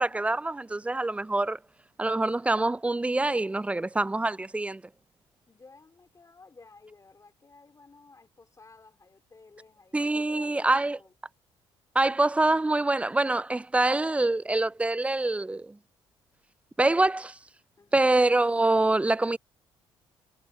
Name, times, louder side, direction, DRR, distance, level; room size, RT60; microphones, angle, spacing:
voice 1, 0.0-1.6 2.0-4.8 9.9-11.0 12.0-15.8 16.8-17.3 17.9-19.4, right 2 dB, 10° right, 0.3 m, -25 dB
voice 2, 5.5-10.7 10.9-11.1 17.8-18.2, left 3 dB, 30° left, 3.5 m, -54 dB
supercardioid pair, 60°, 11 cm